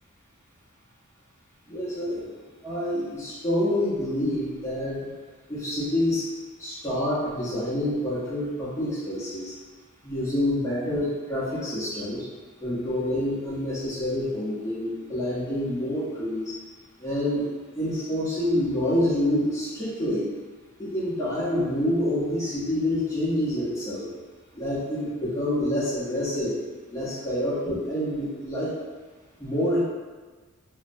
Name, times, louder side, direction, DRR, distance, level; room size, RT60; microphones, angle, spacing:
voice 1, 1.7-2.3 2.6-5.0 5.5-6.3 6.6-9.5 10.0-12.3 12.6-16.5 17.0-17.4 17.7-20.3 20.8-24.1 24.5-26.5 26.9-28.7 29.4-29.8, left 1 dB, 15° left, -10 dB, 0.7 m, -27 dB
2.6 x 2.0 x 2.5 m, 1.4 s
head